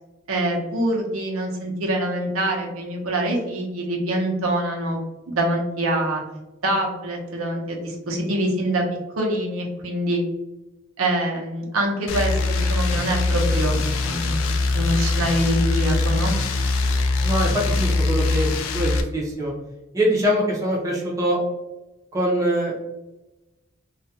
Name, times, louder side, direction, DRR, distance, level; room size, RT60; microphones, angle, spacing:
voice 1, 0.3-5.0 5.3-6.2 6.6-8.8 9.1-10.2 11.0-13.8 14.0-14.4 14.7-16.4, right 1 dB, 90° right, 0 dB, 0.7 m, -25 dB
sound 1, 12.1-19.0, left 3 dB, 80° left, 0.3 m, -22 dB
voice 2, 17.2-19.5 19.9-21.4 22.1-22.7, equal, 15° right, -4 dB, 0.5 m, -23 dB
2.3 x 2.1 x 2.7 m, 1.0 s
head